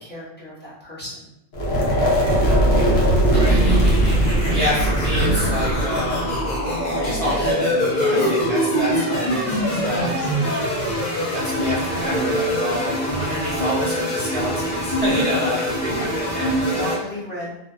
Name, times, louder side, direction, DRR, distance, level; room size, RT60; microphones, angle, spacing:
voice 1, 0.0-1.3 8.1-8.4 9.9-10.3 15.1-15.5 15.9-16.0 16.6-17.6, left 1 dB, 10° left, -9 dB, 0.7 m, -32 dB
sound 1, 1.5-7.5, right 1 dB, 75° left, 1.0 m, -19 dB
voice 2, 2.4-2.9 3.3-3.7 4.5-6.4 6.9-10.1 11.3-16.8, equal, 70° right, -9 dB, 0.3 m, -28 dB
sound 2, 3.3-16.9, equal, 55° left, 0.5 m, -24 dB
sound 3, 9.5-13.9, equal, 50° right, 0.7 m, -40 dB
2.7 x 2.3 x 2.3 m, 0.89 s
omnidirectional pair, 1.4 m